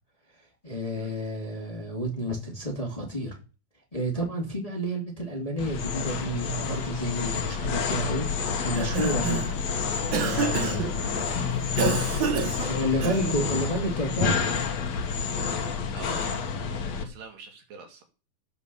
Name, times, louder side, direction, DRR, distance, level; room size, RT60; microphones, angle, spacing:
voice 1, 0.6-3.4 3.9-8.3 8.6-9.5 10.2-11.2 12.7-14.6, equal, 10° left, 2.3 m, -30 dB
sound 1, 5.6-17.0, left 6 dB, 55° left, 2.5 m, -29 dB
Cough, 8.6-9.6 10.1-10.9 11.8-13.4, right 6 dB, 55° right, 1.3 m, -28 dB
voice 2, 12.6-13.3 15.9-16.4 17.0-18.0, right 4 dB, 75° right, 4.1 m, -42 dB
15.5 x 5.3 x 7.0 m
omnidirectional pair, 4.0 m